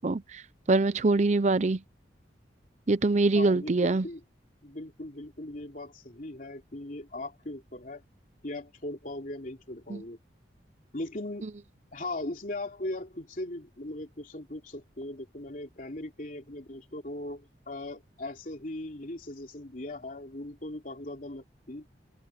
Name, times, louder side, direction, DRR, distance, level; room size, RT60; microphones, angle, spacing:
voice 1, 0.0-1.8 2.9-4.1 9.9-10.0 11.4-11.5, right 3 dB, 40° right, 0.5 m, -24 dB
voice 2, 3.3-4.2 4.6-8.0 8.4-10.2 10.9-11.4 11.9-21.9, left 1 dB, 45° left, 3.1 m, -39 dB
open air
head